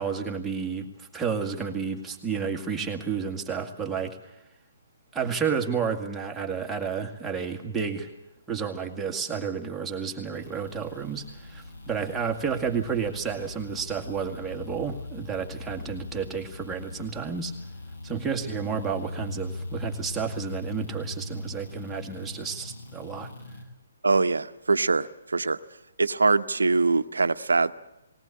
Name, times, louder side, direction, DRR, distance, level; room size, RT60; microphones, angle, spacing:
voice 1, 0.0-4.2 5.1-8.1 8.5-17.5 18.0-23.3, right 6 dB, 10° right, 0 dB, 2.0 m, -31 dB
sound 1, 10.3-23.6, left 2 dB, 70° left, 6.8 m, -40 dB
voice 2, 24.0-25.6 26.0-27.7, right 3 dB, 80° right, 12 dB, 0.9 m, -23 dB
20.0 x 19.0 x 8.6 m, 0.87 s
figure-of-eight pair, 135°, 0 cm